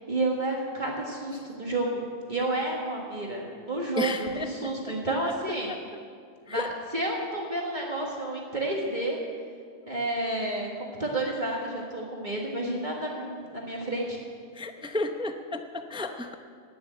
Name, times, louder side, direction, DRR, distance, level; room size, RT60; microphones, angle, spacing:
voice 1, 0.1-2.0 2.3-5.7 6.5-9.2 9.9-14.2, right 2 dB, 35° right, -2 dB, 1.7 m, -30 dB
voice 2, 4.0-4.9 5.7-5.8 6.5-6.7 14.5-16.3, left 2 dB, 5° right, 6 dB, 0.4 m, -33 dB
11.5 x 10.0 x 8.9 m, 2.1 s
omnidirectional pair, 1.3 m